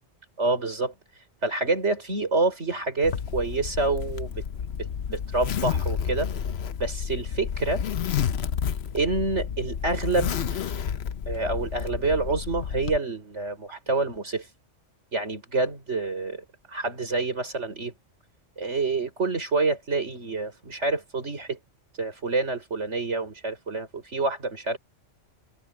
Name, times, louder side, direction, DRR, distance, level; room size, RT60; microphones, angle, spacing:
voice 1, 0.4-0.9 1.4-4.4 4.8-6.3 6.8-7.8 8.9-10.8 11.3-14.5 15.1-17.9 18.6-21.6 22.0-24.8, right 3 dB, 65° right, 5.6 m, -27 dB
Zipper (clothing), 3.0-13.0, left 8 dB, 60° left, 1.0 m, -30 dB
omnidirectional pair, 1.3 m